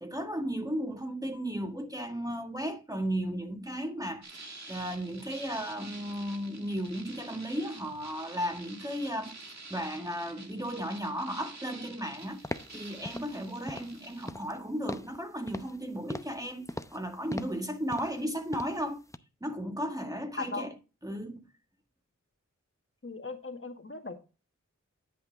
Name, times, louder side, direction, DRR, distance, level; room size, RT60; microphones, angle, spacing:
voice 1, 0.0-12.4 12.7-19.0 19.4-20.7 21.0-21.5, equal, 10° right, 1.9 m, -35 dB
sound 1, 4.2-14.3, right 3 dB, 65° right, 2.2 m, -48 dB
sound 2, 12.4-12.8 13.0-13.3 13.7-14.0 14.3-14.6 14.9-15.2 15.5-15.8 16.1-16.4 16.7-17.0 17.3-17.6 17.9-18.2 18.5-18.8 19.1-19.2, left 1 dB, 10° left, 0.7 m, -40 dB
voice 2, 20.4-20.7 23.0-24.2, left 3 dB, 45° left, 1.7 m, -38 dB
10.5 x 5.7 x 3.9 m
wide cardioid pair, 45°, 29 cm